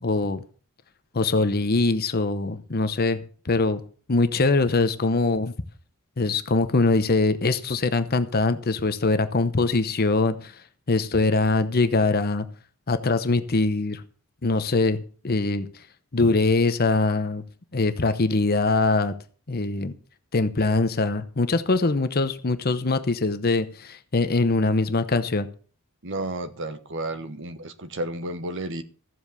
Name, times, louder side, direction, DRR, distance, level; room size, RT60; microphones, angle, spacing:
voice 1, 0.0-0.4 1.1-3.8 4.1-5.5 6.2-10.6 10.9-12.5 12.9-14.0 14.4-15.7 16.1-17.4 17.7-19.1 19.5-19.9 20.3-25.5, left 3 dB, 45° left, 0.9 m, -23 dB
voice 2, 26.0-28.8, right 2 dB, 55° right, 1.3 m, -32 dB
14.5 x 7.8 x 6.8 m
head